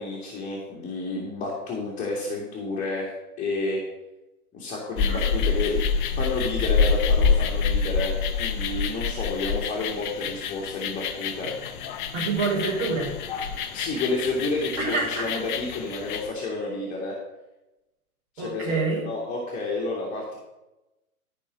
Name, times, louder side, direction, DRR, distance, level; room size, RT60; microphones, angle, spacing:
voice 1, 0.0-3.1 3.4-3.8 4.5-5.8 6.2-11.5 13.7-17.2 18.4-18.8 19.1-20.4, left 3 dB, 15° left, -3 dB, 2.1 m, -30 dB
sound 1, 5.0-16.3, left 5 dB, 35° left, 0.9 m, -27 dB
voice 2, 12.1-13.1 14.8-15.3 18.4-19.0, right 4 dB, 35° right, -2 dB, 4.6 m, -27 dB
13.0 x 5.2 x 6.4 m, 0.99 s
figure-of-eight pair, 120°, 44 cm